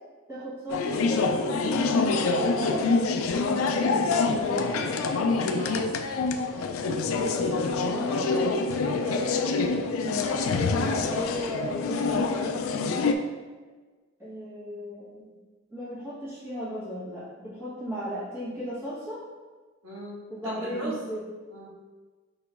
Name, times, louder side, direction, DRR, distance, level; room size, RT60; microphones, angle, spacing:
voice 1, 0.3-4.7 6.8-12.5 14.2-15.4 15.7-19.2 20.3-21.2, equal, 10° right, -10 dB, 1.4 m, -35 dB
sound 1, 0.7-13.1, left 4 dB, 75° left, 0.4 m, -26 dB
voice 2, 5.6-5.9 12.7-13.1 19.8-21.0 21.5-21.7, equal, 75° right, -6 dB, 1.3 m, -38 dB
4.9 x 2.9 x 3.4 m, 1.3 s
head